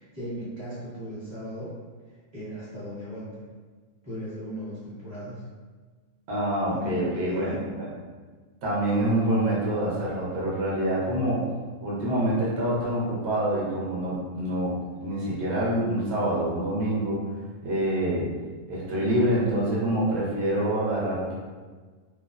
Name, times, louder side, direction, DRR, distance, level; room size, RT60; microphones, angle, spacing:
voice 1, 0.0-1.7 2.3-3.4 4.0-5.4 6.7-7.7, equal, 20° right, -11 dB, 0.9 m, -37 dB
voice 2, 6.3-7.8 8.6-11.4 11.8-14.7 15.0-17.2 17.6-18.3 18.7-21.3, right 1 dB, 55° right, -7 dB, 1.0 m, -26 dB
2.4 x 2.2 x 2.3 m, 1.4 s
omnidirectional pair, 1.5 m